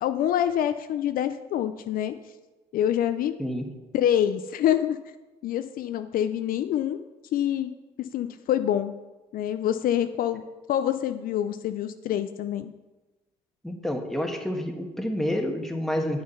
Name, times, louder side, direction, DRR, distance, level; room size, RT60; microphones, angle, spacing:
voice 1, 0.0-2.2 2.7-3.3 3.9-5.0 5.4-7.0 7.3-7.7 8.0-8.9 9.3-10.4 10.7-12.7, left 10 dB, 60° left, 10 dB, 0.5 m, -26 dB
voice 2, 3.4-3.7 13.6-16.2, left 1 dB, ahead, 3 dB, 1.4 m, -29 dB
8.0 x 6.4 x 5.6 m, 1.2 s
supercardioid pair, 70°, 17 cm